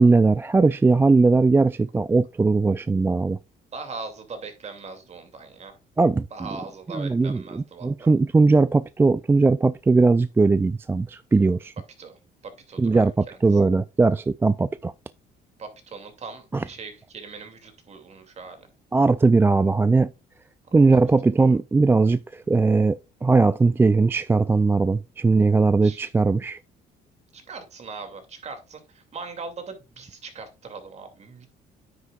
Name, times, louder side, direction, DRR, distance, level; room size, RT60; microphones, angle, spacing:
voice 1, 0.0-3.4 6.0-6.3 6.9-11.7 12.8-14.9 16.5-16.6 18.9-20.1 20.7-26.6, right 3 dB, 15° right, 0.3 m, -19 dB
voice 2, 3.7-5.7 6.3-8.1 12.0-13.4 15.6-18.7 25.8-26.0 27.3-31.5, right 4 dB, 40° right, 2.5 m, -40 dB
9.6 x 8.3 x 2.4 m
cardioid pair, 110°, 17 cm